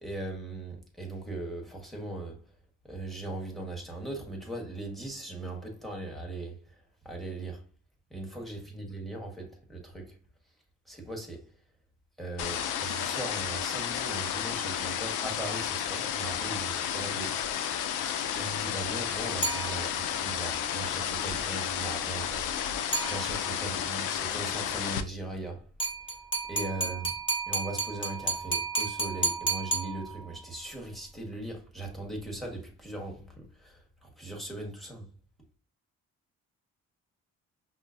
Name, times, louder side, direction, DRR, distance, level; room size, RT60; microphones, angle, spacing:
voice 1, 0.0-2.4 2.9-6.7 7.0-7.6 8.1-10.1 10.9-11.5 12.2-17.4 18.3-25.7 26.5-27.1 27.5-35.1, right 2 dB, ahead, 1.3 m, -39 dB
sound 1, 12.4-25.0, left 9 dB, 80° left, 0.5 m, -32 dB
sound 2, 19.4-20.2 22.9-23.7 25.8-30.5, right 3 dB, 15° left, 1.3 m, -32 dB
5.4 x 2.1 x 2.5 m
cardioid pair, 90°, 30 cm